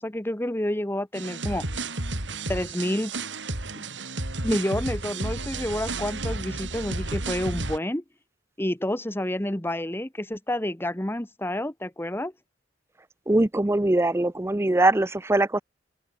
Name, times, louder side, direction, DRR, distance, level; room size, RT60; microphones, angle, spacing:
voice 1, 0.0-1.6 2.5-3.1 3.7-3.9 4.4-8.0 8.6-12.3, left 1 dB, 10° left, 1.3 m, -29 dB
sound 1, 1.1-7.8, right 2 dB, 70° right, 4.0 m, -32 dB
voice 2, 13.3-15.6, right 2 dB, 15° right, 0.5 m, -22 dB
open air
head